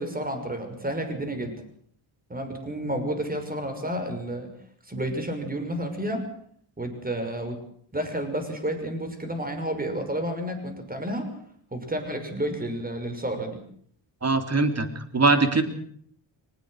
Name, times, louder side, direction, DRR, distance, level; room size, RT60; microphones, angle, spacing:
voice 1, 0.0-1.5 2.3-4.5 4.9-6.2 6.8-7.6 7.9-11.3 11.7-13.6, right 1 dB, 20° right, 7 dB, 6.0 m, -30 dB
voice 2, 14.2-15.6, right 3 dB, 35° right, 8 dB, 3.3 m, -22 dB
23.0 x 20.5 x 6.5 m, 0.62 s
cardioid pair, 95°, 45 cm